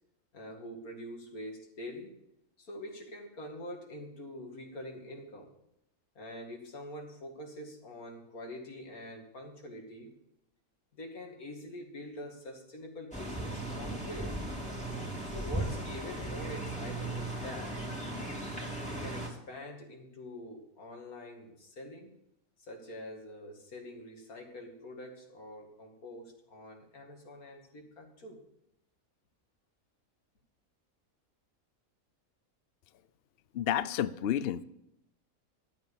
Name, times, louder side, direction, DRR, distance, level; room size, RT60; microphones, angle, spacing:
voice 1, 0.3-2.1 2.6-5.5 6.1-10.1 10.9-14.4 15.2-17.9 18.8-22.1 22.6-28.4, left 1 dB, 90° left, 2 dB, 2.8 m, -45 dB
sound 1, 13.1-19.3, right 1 dB, 5° left, 2.8 m, -37 dB
voice 2, 33.5-34.6, left 10 dB, 60° left, 15 dB, 0.7 m, -30 dB
12.5 x 8.3 x 7.0 m, 0.81 s
omnidirectional pair, 1.5 m